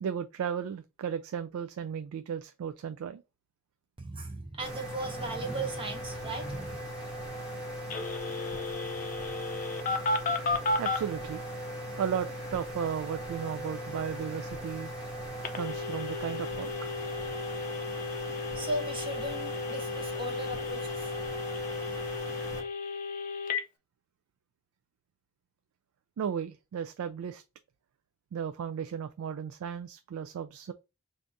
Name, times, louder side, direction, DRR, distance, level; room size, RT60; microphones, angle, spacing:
voice 1, 0.0-3.2 10.8-11.4 12.0-14.9 15.5-16.7 26.2-27.4 28.3-30.7, right 8 dB, 85° right, 0.3 m, -35 dB
voice 2, 4.0-6.8 18.1-21.1, right 1 dB, 25° right, 0.7 m, -37 dB
sound 1, 4.6-22.6, equal, 5° right, 1.8 m, -39 dB
Telephone, 7.9-11.0 15.4-23.6, left 3 dB, 40° left, 0.5 m, -34 dB
3.4 x 2.6 x 3.8 m
head